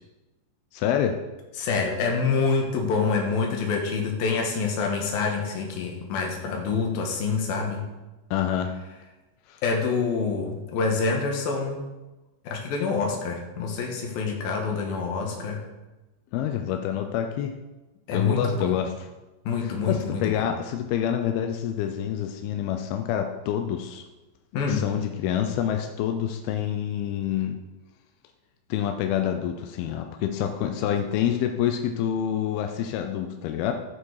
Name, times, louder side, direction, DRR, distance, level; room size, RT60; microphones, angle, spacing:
voice 1, 0.7-1.2 8.3-8.7 9.5-9.6 16.3-17.6 18.1-18.9 19.6-24.0 24.7-27.6 28.7-33.7, left 9 dB, 80° left, 5 dB, 2.2 m, -27 dB
voice 2, 1.6-7.8 9.6-11.8 12.4-15.6 18.1-18.8 19.4-20.5 24.5-24.8, left 4 dB, 65° left, 1 dB, 3.0 m, -26 dB
13.5 x 7.0 x 4.8 m, 1.1 s
omnidirectional pair, 5.0 m